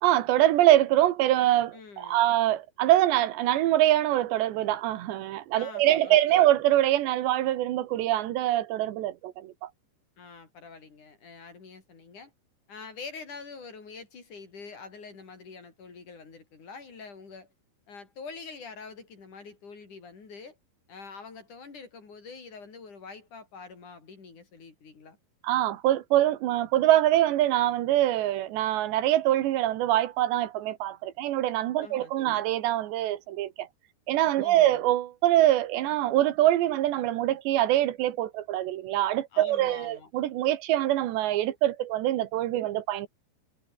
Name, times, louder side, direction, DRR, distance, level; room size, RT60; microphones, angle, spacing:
voice 1, 0.0-9.7 25.4-33.7 34.1-43.1, right 14 dB, 85° right, 3.6 m, -24 dB
voice 2, 1.7-2.3 5.5-6.4 10.2-12.3 12.7-17.5 17.9-20.6 20.9-25.2 31.8-32.4 34.4-34.8 39.3-40.1, left 4 dB, 45° left, 6.0 m, -45 dB
omnidirectional pair, 4.9 m